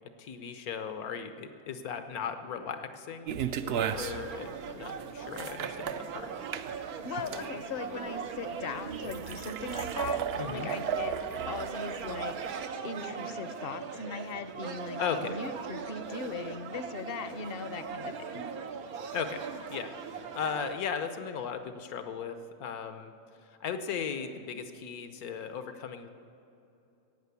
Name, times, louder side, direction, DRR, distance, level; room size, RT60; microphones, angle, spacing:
voice 1, 0.2-6.3 10.4-10.7 15.0-15.4 19.1-19.4 19.7-23.1 23.4-26.1, left 7 dB, 80° left, 9 dB, 1.4 m, -37 dB
sound 1, 3.3-12.7, right 8 dB, 65° right, 0.6 m, -36 dB
sound 2, 3.7-20.7, right 6 dB, 90° right, 1.3 m, -40 dB
voice 2, 7.0-11.1 11.5-12.5 12.8-18.5, left 5 dB, 50° left, 11 dB, 0.7 m, -39 dB
15.0 x 8.9 x 8.2 m, 2.8 s
omnidirectional pair, 1.5 m